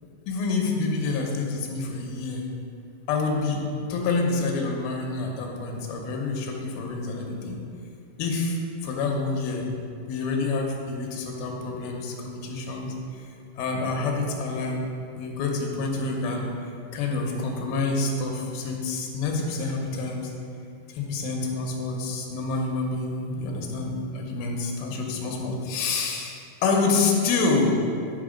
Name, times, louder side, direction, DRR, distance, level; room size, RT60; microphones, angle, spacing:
voice 1, 0.3-2.5 3.1-7.6 8.2-8.6 8.8-9.7 10.1-12.9 13.6-14.8 15.2-16.5 16.9-20.3 20.9-27.8, left 3 dB, 90° left, 1 dB, 2.7 m, -27 dB
8.6 x 3.6 x 5.0 m, 2.5 s
omnidirectional pair, 4.1 m